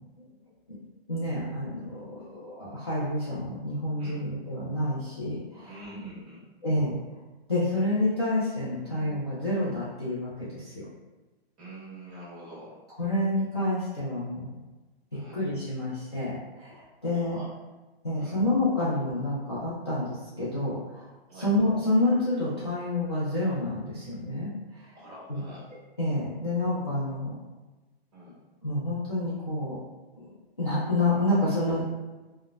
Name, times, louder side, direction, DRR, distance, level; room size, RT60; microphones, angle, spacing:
voice 1, 1.1-5.7 6.6-6.9 7.5-10.9 13.0-14.5 15.3-17.4 18.0-21.1 21.3-24.9 25.3-25.4 26.0-27.3 28.6-29.8 30.2-31.8, left 1 dB, 25° left, -11 dB, 0.3 m, -28 dB
voice 2, 5.6-6.4 8.8-9.0 11.6-12.8 15.1-15.4 17.1-17.5 18.1-18.4 21.3-21.5 24.9-25.7 28.1-28.4, right 1 dB, 20° right, -7 dB, 1.1 m, -45 dB
3.8 x 2.1 x 2.2 m, 1.2 s
hypercardioid pair, 175°, 32 cm